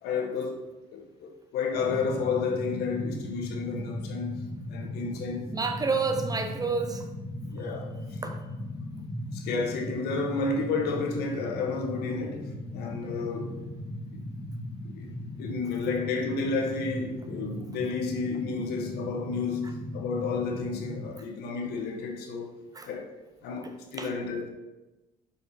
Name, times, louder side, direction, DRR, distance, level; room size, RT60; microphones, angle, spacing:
voice 1, 0.0-0.6 0.9-5.5 7.5-7.9 9.3-13.6 14.8-15.1 15.4-22.5 22.8-23.1 23.4-24.5, left 4 dB, 75° left, 1.2 m, -31 dB
sound 1, 1.7-21.0, left 1 dB, 25° left, 1.8 m, -38 dB
voice 2, 5.5-7.1 8.2-8.4 22.7-22.9 24.0-24.1, right 4 dB, 20° right, 0.8 m, -29 dB
5.8 x 4.4 x 4.1 m
supercardioid pair, 85°, 17 cm